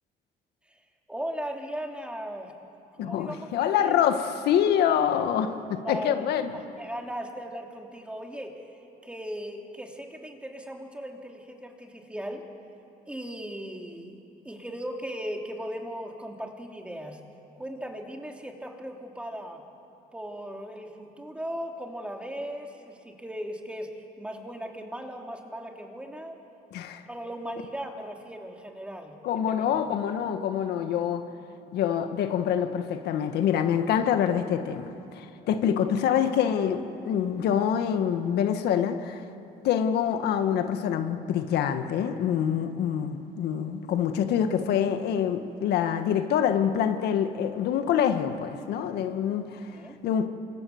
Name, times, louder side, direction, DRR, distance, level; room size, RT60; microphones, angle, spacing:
voice 1, 1.1-2.5 2.9-3.5 3.8-3.9 5.8-6.2 6.5-8.6 9.0-12.5 13.1-14.2 14.4-17.2 17.5-19.6 20.1-26.4 27.1-29.2 29.5-29.8 49.7-50.0, equal, 5° right, 3.0 m, -37 dB
voice 2, 3.0-6.5 26.7-27.0 29.2-31.2 31.7-39.2 39.6-49.7 50.0-50.3, left 9 dB, 75° left, 1.6 m, -26 dB
29.0 x 25.0 x 7.2 m
cardioid pair, 110°, 17 cm